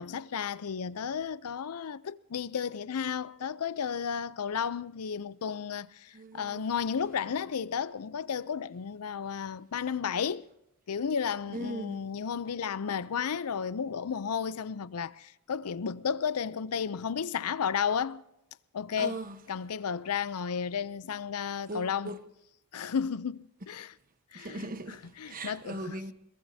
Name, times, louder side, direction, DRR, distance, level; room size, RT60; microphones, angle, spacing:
voice 1, 0.0-10.5 10.9-18.2 18.7-19.2 19.5-22.1 22.7-23.9 24.3-24.6 25.2-25.9, left 7 dB, 80° left, 0.5 m, -33 dB
voice 2, 6.1-6.7 11.5-12.1 19.0-19.4 21.7-22.2 24.3-26.1, right 1 dB, 40° right, 1.1 m, -39 dB
22.0 x 21.5 x 2.8 m
head